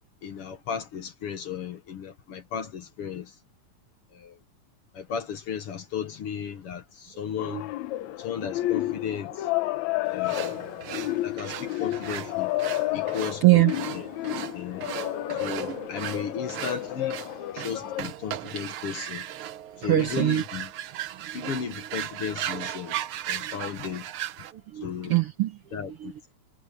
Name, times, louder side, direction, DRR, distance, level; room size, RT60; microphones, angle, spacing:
voice 1, 0.2-3.4 4.1-4.4 4.9-7.7 8.2-9.5 10.1-10.6 11.2-12.5 12.9-13.6 13.9-14.1 14.5-14.9 15.3-17.2 17.5-19.3 19.8-20.7 21.3-23.0 23.3-24.1 24.8-25.2 25.7-26.1, left 7 dB, 55° left, 1.9 m, -35 dB
sound 1, 7.4-18.0, left 16 dB, 75° left, 2.1 m, -31 dB
sound 2, 10.2-24.5, right 12 dB, 85° right, 1.2 m, -37 dB
voice 2, 13.4-13.9 15.7-15.9 19.7-20.4 21.1-21.5 23.4-23.5 24.5-26.3, right 17 dB, 65° right, 1.5 m, -25 dB
omnidirectional pair, 3.4 m